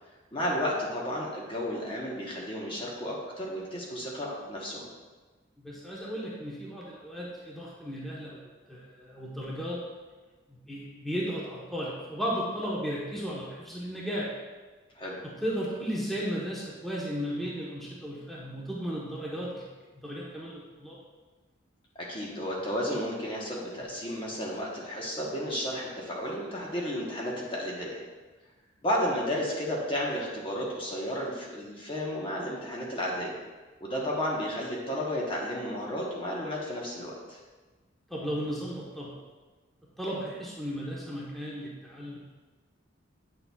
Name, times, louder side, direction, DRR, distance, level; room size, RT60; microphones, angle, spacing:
voice 1, 0.3-4.9 14.9-15.2 22.0-28.0 28.8-33.3 33.8-37.4, equal, 25° left, -3 dB, 1.1 m, -32 dB
voice 2, 5.6-9.8 10.5-14.3 15.2-19.6 19.9-21.0 38.1-39.1 40.0-42.2, equal, ahead, -6 dB, 1.0 m, -35 dB
8.6 x 6.7 x 2.3 m, 1.3 s
head